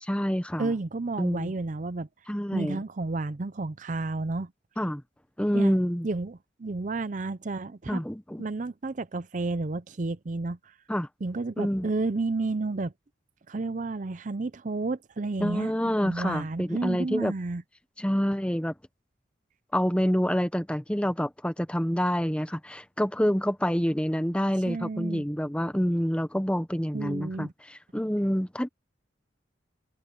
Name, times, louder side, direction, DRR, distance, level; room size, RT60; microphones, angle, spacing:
voice 1, 0.1-0.7 1.2-1.5 2.3-2.8 4.8-5.0 5.4-6.1 7.9-8.4 10.9-11.1 11.6-11.9 15.4-17.3 18.0-18.7 19.7-28.7, equal, 5° left, 1.0 m, -27 dB
voice 2, 0.6-2.1 2.5-4.5 5.5-5.8 6.0-8.0 8.4-10.7 11.2-12.9 13.5-17.6 24.7-25.3 26.9-27.5, right 3 dB, 40° right, 0.5 m, -31 dB
head